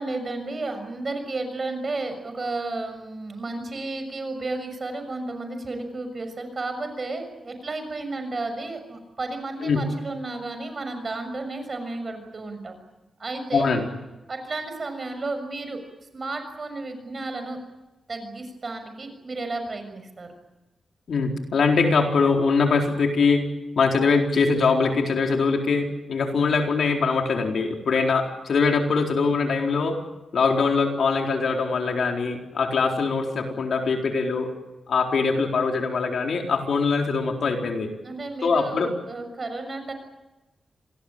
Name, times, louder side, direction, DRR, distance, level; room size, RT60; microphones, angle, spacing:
voice 1, 0.0-12.8 13.2-13.7 14.3-15.8 16.1-17.6 18.1-20.3 38.0-39.9, right 2 dB, 40° right, 7 dB, 6.6 m, -32 dB
voice 2, 13.5-13.8 21.1-23.4 23.8-30.0 30.3-34.5 34.9-37.9 38.4-38.9, left 4 dB, 70° left, 2 dB, 4.3 m, -22 dB
27.0 x 20.0 x 8.9 m, 1.0 s
wide cardioid pair, 100°, 0 cm